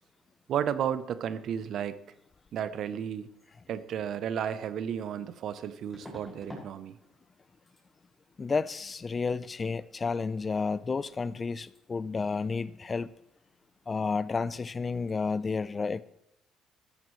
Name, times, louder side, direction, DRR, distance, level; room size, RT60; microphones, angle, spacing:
voice 1, 0.5-2.0 2.5-3.3 3.7-7.0, right 9 dB, 65° right, 0.7 m, -33 dB
sound 1, 5.9-6.7 7.0-7.4 7.7-7.8 10.8-10.9 11.1-11.4 11.7-11.8, left 1 dB, ahead, 5.8 m, -47 dB
voice 2, 8.4-13.1 13.9-16.0, left 4 dB, 30° left, 0.4 m, -31 dB
13.5 x 13.5 x 3.2 m
cardioid pair, 95°, 0 cm